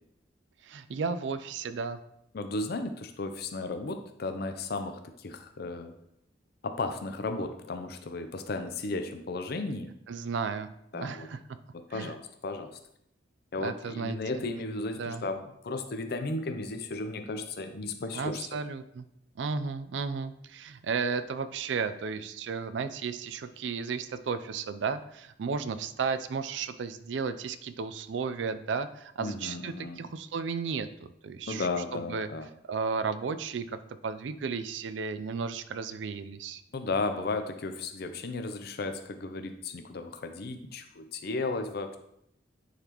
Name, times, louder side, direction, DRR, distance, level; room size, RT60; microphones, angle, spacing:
voice 1, 0.6-2.0 10.1-10.7 10.9-11.4 11.9-12.1 13.6-14.2 15.0-15.2 18.1-19.1 19.4-32.3 32.7-33.8 34.0-36.6, right 5 dB, 75° right, 12 dB, 0.4 m, -34 dB
voice 2, 2.3-5.9 6.6-9.9 10.9-11.3 11.7-12.8 13.5-18.6 29.2-30.0 31.5-32.5 36.7-42.0, left 3 dB, 55° left, 7 dB, 0.5 m, -34 dB
9.8 x 4.0 x 3.0 m, 0.76 s
head